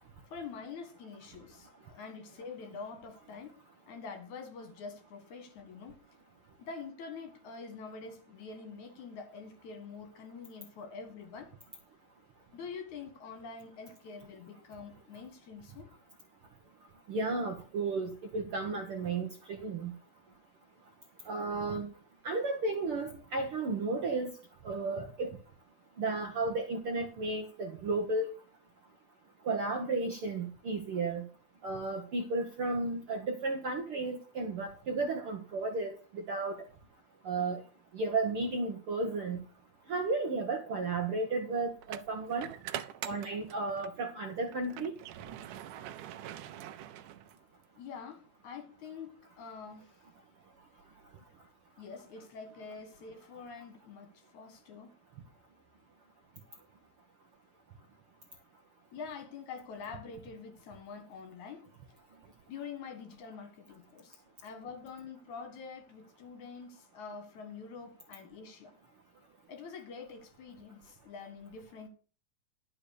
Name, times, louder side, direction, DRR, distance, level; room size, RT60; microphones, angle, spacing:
voice 1, 0.3-1.7 1.9-3.6 3.9-6.0 6.6-11.5 12.5-15.9 47.8-50.0 51.8-54.9 58.9-61.7 62.5-68.7 69.5-71.9, left 5 dB, 65° left, 3.0 m, -46 dB
voice 2, 17.1-19.3 19.6-19.9 21.3-21.9 22.2-24.3 24.6-25.3 26.0-28.3 29.4-31.3 31.6-36.6 37.2-37.6 37.9-39.4 39.9-42.5 43.0-44.9, right 3 dB, 60° right, 1.5 m, -33 dB
sound 1, 39.8-40.0 41.8-44.0 44.4-47.6, right 11 dB, 80° right, 2.2 m, -44 dB
11.5 x 5.4 x 6.5 m
omnidirectional pair, 3.8 m